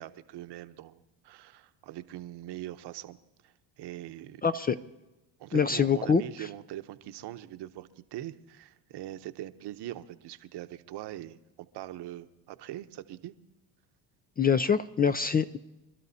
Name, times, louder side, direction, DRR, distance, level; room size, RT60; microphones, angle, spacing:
voice 1, 0.0-3.2 3.4-4.4 5.4-13.3, right 13 dB, 60° right, 11 dB, 0.9 m, -42 dB
voice 2, 4.4-4.8 5.5-6.5 14.4-15.6, left 6 dB, 20° left, 11 dB, 0.4 m, -25 dB
27.0 x 12.5 x 2.8 m, 0.96 s
supercardioid pair, 80°, 46 cm